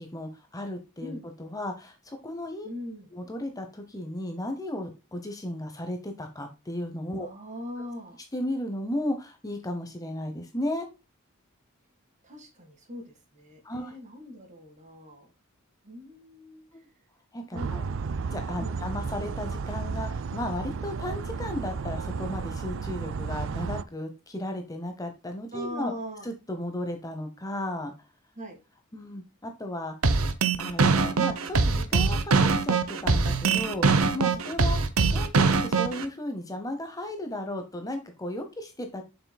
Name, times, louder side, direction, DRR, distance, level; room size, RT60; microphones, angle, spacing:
voice 1, 0.0-1.1 1.4-2.7 3.1-7.3 8.3-10.9 13.6-13.9 16.7-16.9 17.3-17.8 18.3-25.9 26.2-27.9 28.9-29.9 30.6-34.8 35.1-39.0, left 1 dB, 15° left, 5 dB, 0.9 m, -35 dB
voice 2, 2.6-3.1 7.2-8.2 12.2-15.3 15.8-16.6 17.5-17.7 18.6-18.7 25.5-26.3 28.4-28.6 34.3-34.4, left 1 dB, 35° right, 4 dB, 1.8 m, -40 dB
sound 1, 17.6-23.8, right 5 dB, 60° right, 0.4 m, -33 dB
sound 2, 30.0-36.0, right 4 dB, 80° right, 0.8 m, -22 dB
7.6 x 5.9 x 2.2 m, 0.28 s
head